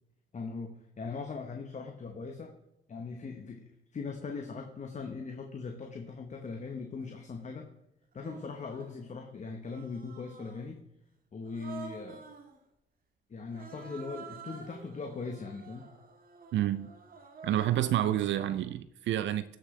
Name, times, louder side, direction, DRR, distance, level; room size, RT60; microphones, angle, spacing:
voice 1, 0.3-2.5 2.9-7.7 8.1-10.8 11.3-12.2 13.3-15.9, left 4 dB, 35° left, 4 dB, 1.1 m, -40 dB
Human voice, 7.0-7.1 8.1-9.0 9.6-10.7 11.4-12.6 13.5-18.7, right 5 dB, 45° right, 1.6 m, -49 dB
voice 2, 16.5-16.9 17.4-19.6, right 12 dB, 70° right, 13 dB, 0.5 m, -29 dB
13.5 x 6.3 x 3.3 m, 0.85 s
cardioid pair, 90°, 20 cm